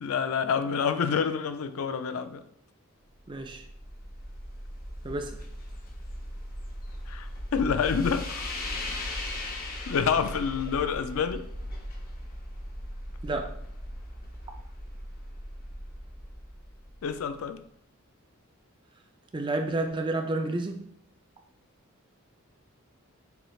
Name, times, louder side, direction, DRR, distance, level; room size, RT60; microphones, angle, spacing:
voice 1, 0.0-2.4 7.1-8.5 9.0-9.1 9.9-11.5 17.0-17.6, left 6 dB, 80° left, 10 dB, 0.4 m, -28 dB
sound 1, 3.2-17.3, left 1 dB, 40° left, 0.6 m, -38 dB
voice 2, 3.3-3.7 5.0-5.4 13.2-13.5 19.3-20.8, right 2 dB, 20° right, 4 dB, 0.4 m, -30 dB
6.8 x 3.2 x 2.3 m, 0.68 s
head